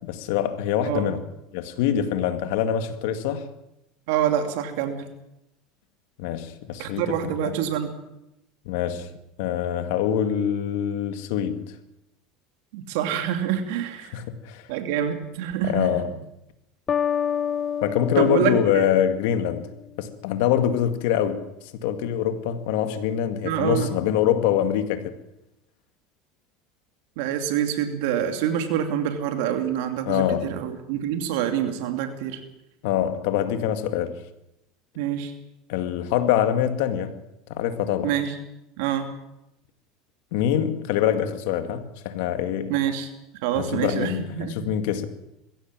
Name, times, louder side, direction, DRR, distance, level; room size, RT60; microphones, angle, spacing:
voice 1, 0.0-1.2 1.5-3.5 6.2-7.6 8.7-9.1 9.4-11.7 14.1-14.6 15.6-16.1 17.8-19.7 20.0-21.5 21.8-25.1 30.1-30.6 32.8-34.1 35.7-37.2 37.5-38.1 40.3-42.7 43.6-45.1, left 10 dB, 75° left, 2.1 m, -24 dB
voice 2, 4.1-5.1 6.8-7.9 12.7-14.2 14.7-15.9 18.2-18.9 23.4-23.9 27.2-32.4 35.0-35.3 38.0-38.3 38.8-39.1 42.7-43.1 43.4-44.7, right 9 dB, 75° right, 2.7 m, -26 dB
sound 1, 16.9-19.7, left 8 dB, 30° left, 0.8 m, -28 dB
22.0 x 16.0 x 7.6 m
supercardioid pair, 125°, 0 cm